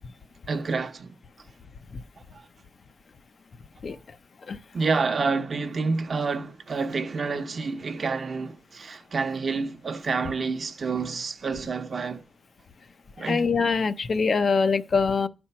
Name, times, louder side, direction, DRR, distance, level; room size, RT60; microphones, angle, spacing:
voice 1, 0.5-1.2 2.3-2.4 4.7-12.2 13.2-13.5, right 4 dB, 45° right, 0.8 m, -28 dB
voice 2, 3.8-4.6 13.2-15.3, left 5 dB, 50° left, 0.5 m, -25 dB
11.0 x 4.4 x 5.6 m
wide cardioid pair, 160°, 0 cm